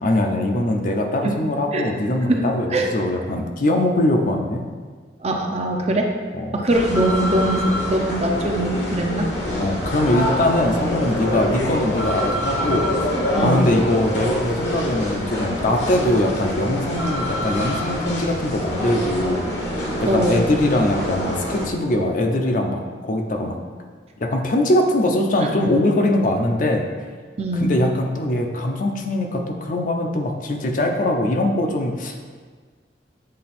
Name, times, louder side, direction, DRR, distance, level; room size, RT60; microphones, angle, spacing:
voice 1, 0.0-4.6 6.3-6.5 9.6-12.9 13.4-19.5 20.0-23.6 24.2-26.9 27.5-32.1, left 1 dB, 45° left, 3 dB, 0.6 m, -22 dB
voice 2, 2.2-2.9 5.2-6.1 6.5-9.3 13.3-13.6 20.1-20.4 25.4-25.5 27.4-27.7, right 1 dB, 35° right, 1 dB, 0.6 m, -22 dB
sound 1, 6.7-21.7, left 1 dB, 70° left, 1.1 m, -25 dB
7.6 x 3.4 x 4.3 m, 1.5 s
head